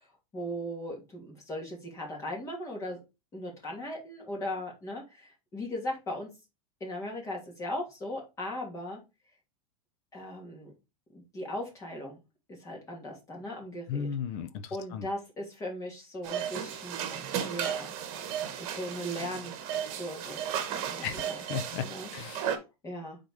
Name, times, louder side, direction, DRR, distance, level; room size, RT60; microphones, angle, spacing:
voice 1, 0.3-3.0 3.3-6.3 6.8-9.0 10.1-10.7 11.1-12.2 12.5-14.1 14.7-17.9 18.6-19.6 19.9-20.4 20.8-21.4 21.8-22.1 22.5-23.2, left 1 dB, 15° left, 2.7 m, -38 dB
voice 2, 13.9-15.1 21.0-22.5, left 7 dB, 50° left, 0.6 m, -36 dB
sound 1, 16.2-22.6, right 9 dB, 45° right, 1.5 m, -35 dB
6.4 x 4.0 x 4.8 m
supercardioid pair, 155°, 18 cm